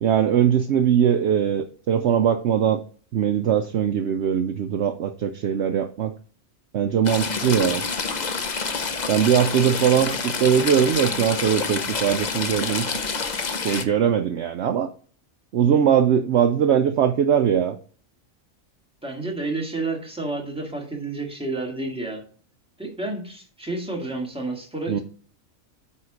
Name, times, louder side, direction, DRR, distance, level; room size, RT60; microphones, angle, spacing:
voice 1, 0.0-2.8 3.1-6.1 6.7-7.8 9.1-12.9 13.6-14.9 15.5-17.8 24.9-25.0, right 8 dB, 65° right, 8 dB, 0.8 m, -21 dB
Stream / Trickle dribble, 7.1-13.8, left 4 dB, 40° left, 0.8 m, -27 dB
voice 2, 19.0-22.2 22.8-25.0, right 2 dB, 5° right, 0 dB, 2.0 m, -30 dB
8.8 x 4.7 x 5.0 m, 0.43 s
omnidirectional pair, 1.4 m